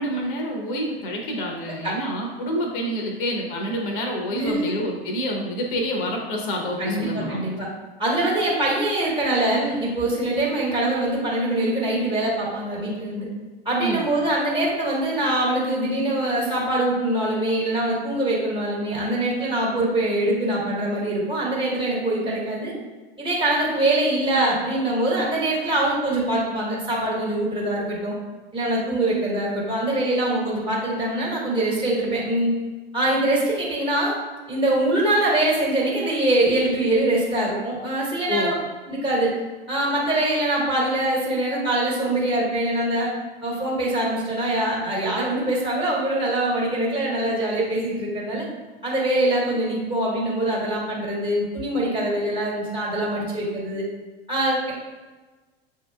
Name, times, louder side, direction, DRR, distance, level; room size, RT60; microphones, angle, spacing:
voice 1, 0.0-7.4 13.8-14.1 38.3-38.5, equal, 55° left, 1 dB, 0.9 m, -27 dB
voice 2, 4.3-4.8 6.8-7.7 8.0-13.3 13.6-22.7 23.2-28.1 28.5-32.5 32.9-34.1 34.5-38.5 38.9-39.3 39.7-43.1 43.4-48.4 48.8-53.8 54.3-54.7, right 1 dB, 15° right, -4 dB, 1.4 m, -23 dB
7.1 x 2.8 x 2.3 m, 1.3 s
figure-of-eight pair, 90°, 31 cm